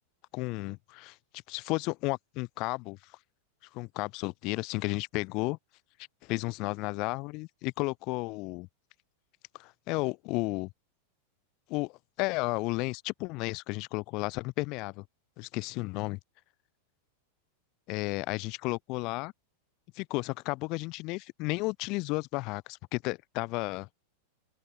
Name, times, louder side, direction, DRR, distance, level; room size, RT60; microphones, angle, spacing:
voice 1, 0.3-1.2 1.5-3.0 3.7-5.6 6.2-8.7 9.6-10.7 11.7-15.0 15.4-16.2 17.9-19.3 19.9-23.9, left 24 dB, 40° left, 8.0 m, -33 dB
open air
figure-of-eight pair, 90°, 0 cm